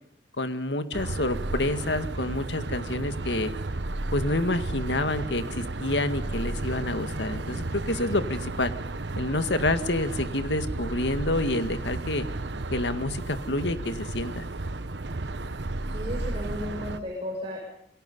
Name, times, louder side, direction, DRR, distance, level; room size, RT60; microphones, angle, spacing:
voice 1, 0.4-3.5 4.1-8.7 9.2-12.3 12.7-14.5, left 2 dB, 90° left, 9 dB, 2.0 m, -28 dB
sound 1, 0.9-17.0, right 2 dB, 90° right, 1.2 m, -33 dB
voice 2, 15.9-17.6, equal, 35° right, 0 dB, 6.4 m, -34 dB
27.5 x 22.0 x 5.5 m, 0.77 s
head